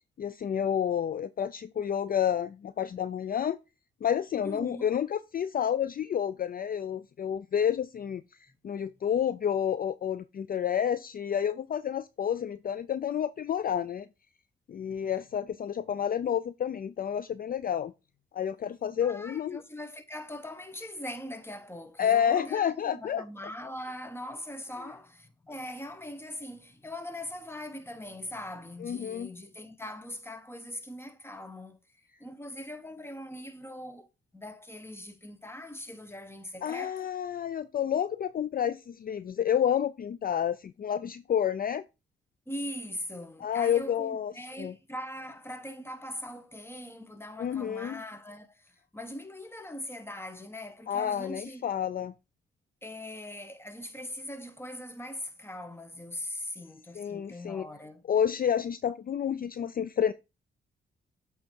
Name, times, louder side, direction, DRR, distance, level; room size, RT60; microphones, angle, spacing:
voice 1, 0.2-3.6 4.0-8.2 8.6-14.1 14.7-17.9 18.3-19.6 22.0-23.2 28.8-29.3 36.6-41.8 43.4-44.3 44.6-44.7 47.4-48.0 50.9-52.1 57.0-57.6 58.1-60.1, left 9 dB, 45° left, 0.4 m, -29 dB
voice 2, 4.4-4.9 8.5-8.6 8.9-9.0 15.0-15.1 19.0-31.8 32.2-34.1 34.3-37.1 42.5-51.7 52.8-58.0, left 1 dB, 10° left, 1.3 m, -41 dB
8.4 x 3.6 x 4.5 m
cardioid pair, 65°, 21 cm